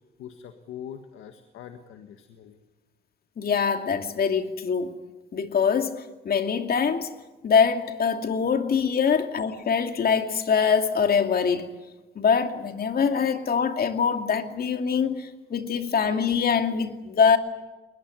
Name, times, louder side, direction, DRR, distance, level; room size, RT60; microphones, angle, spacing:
voice 1, 0.2-2.6, left 9 dB, 85° left, 1.7 m, -42 dB
voice 2, 3.4-4.9 5.3-7.1 7.4-11.7 12.2-17.4, left 6 dB, 50° left, 2.5 m, -24 dB
22.0 x 20.5 x 9.6 m
cardioid pair, 90°, 20 cm